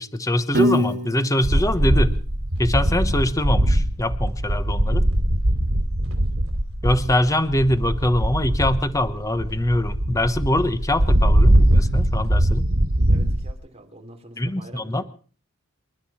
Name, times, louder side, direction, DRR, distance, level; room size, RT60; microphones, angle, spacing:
voice 1, 0.0-2.1 2.6-5.0 6.8-12.7 14.4-15.0, left 1 dB, 15° left, 11 dB, 1.0 m, -23 dB
Piano, 0.5-2.8, left 1 dB, 50° right, 2.7 m, -26 dB
sound 1, 1.4-13.5, right 1 dB, 75° right, 3.4 m, -21 dB
voice 2, 13.1-15.0, right 1 dB, 30° right, 3 dB, 3.6 m, -45 dB
28.0 x 11.5 x 4.3 m, 0.41 s
head